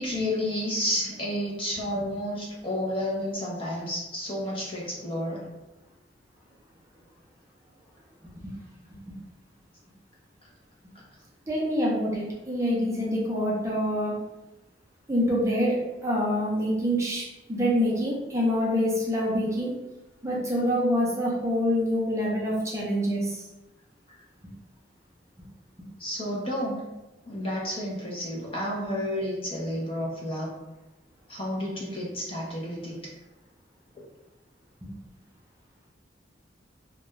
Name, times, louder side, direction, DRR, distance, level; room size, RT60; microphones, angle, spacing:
voice 1, 0.0-5.4 26.0-26.8 27.2-30.5 31.3-33.0, left 1 dB, 30° left, -4 dB, 0.6 m, -31 dB
voice 2, 11.5-14.1 15.1-19.7 20.2-23.4 25.4-25.5 34.8-34.9, equal, 15° right, -4 dB, 0.5 m, -26 dB
2.4 x 2.1 x 3.0 m, 0.99 s
head